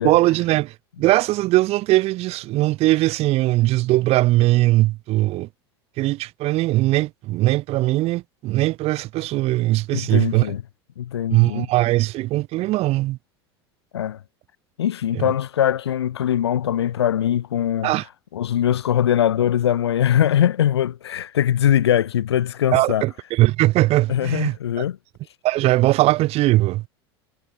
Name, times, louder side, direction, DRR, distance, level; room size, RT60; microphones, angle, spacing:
voice 1, 0.0-5.5 6.0-10.5 11.3-13.2 15.1-15.3 17.8-18.1 22.7-24.6 25.4-26.8, right 18 dB, 50° right, 1.7 m, -20 dB
voice 2, 9.9-10.6 11.0-11.7 13.9-14.2 14.8-17.9 18.3-23.0 24.1-25.0, left 10 dB, 80° left, 1.5 m, -21 dB
hypercardioid pair, 85°, 14 cm